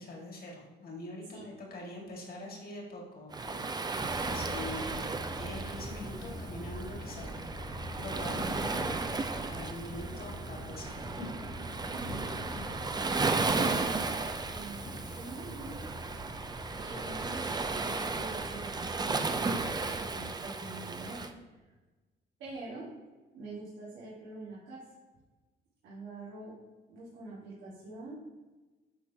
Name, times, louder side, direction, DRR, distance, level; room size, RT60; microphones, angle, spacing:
voice 1, 0.0-5.1 5.4-7.3 8.0-11.4, left 2 dB, 50° left, -1 dB, 1.9 m, -44 dB
Waves surf, 3.3-21.3, right 3 dB, 20° right, 0.4 m, -35 dB
sound 1, 3.9-20.3, equal, 65° left, 2.0 m, -44 dB
voice 2, 11.9-13.9 14.5-15.8 16.8-21.3 22.4-22.9 23.3-24.9 25.8-26.6 26.9-28.1, right 2 dB, 85° right, -10 dB, 1.9 m, -44 dB
11.0 x 3.7 x 2.8 m, 1.2 s
cardioid pair, 90°, 20 cm